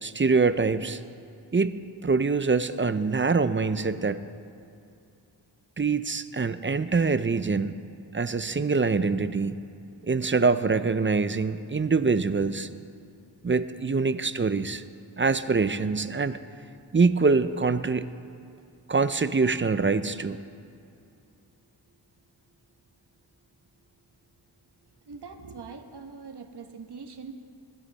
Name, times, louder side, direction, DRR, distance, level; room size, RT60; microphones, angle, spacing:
voice 1, 0.0-1.0 1.5-4.2 5.8-7.7 8.1-9.6 10.0-12.7 13.4-14.8 15.2-16.4 16.9-18.1 18.9-20.4, right 4 dB, 25° right, 13 dB, 0.5 m, -24 dB
voice 2, 25.1-27.3, right 5 dB, 60° right, 6 dB, 1.2 m, -42 dB
22.0 x 12.0 x 4.1 m, 2.5 s
wide cardioid pair, 65°, 45 cm